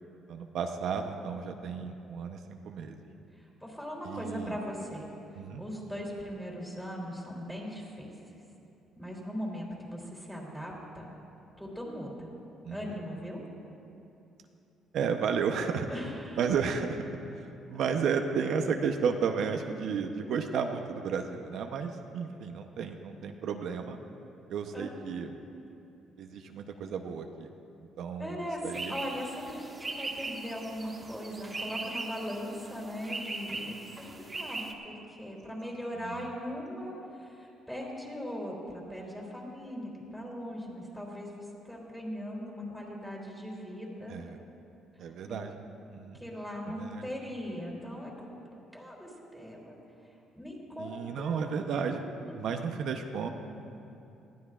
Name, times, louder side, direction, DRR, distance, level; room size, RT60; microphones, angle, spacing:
voice 1, 0.3-3.0 4.0-4.6 5.3-5.6 12.6-13.0 14.9-15.9 16.4-17.0 17.3-24.0 24.5-25.4 26.2-27.5 28.0-28.9 36.0-36.3 44.1-44.4 45.0-45.5 45.9-46.2 46.7-47.0 50.8-52.0 52.4-53.3, right 6 dB, 65° right, 5 dB, 0.7 m, -33 dB
voice 2, 3.3-5.0 5.6-8.1 9.0-11.1 11.6-12.3 12.7-13.4 15.9-16.4 24.7-25.0 28.2-44.2 45.3-45.4 46.1-48.3 48.7-49.8 50.3-51.4 52.2-52.5, equal, ahead, -2 dB, 2.9 m, -39 dB
sound 1, 28.7-34.7, right 2 dB, 20° right, 1.1 m, -40 dB
19.5 x 14.5 x 2.4 m, 2.8 s
cardioid pair, 120°, 0 cm